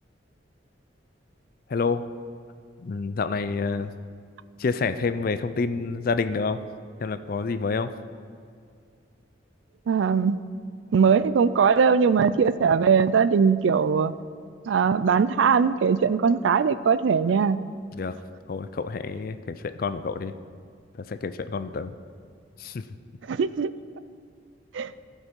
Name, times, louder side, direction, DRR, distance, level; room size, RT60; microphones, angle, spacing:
voice 1, 1.7-2.0 2.8-3.9 4.6-6.6 7.0-7.9 17.9-18.1 18.5-20.3 21.1-21.9 22.6-22.8, left 4 dB, 50° left, 12 dB, 0.4 m, -28 dB
voice 2, 9.9-10.4 10.9-14.1 14.7-17.6 23.3-23.7 24.7-24.9, right 6 dB, 80° right, 15 dB, 0.4 m, -20 dB
15.0 x 5.5 x 4.5 m, 2.3 s
head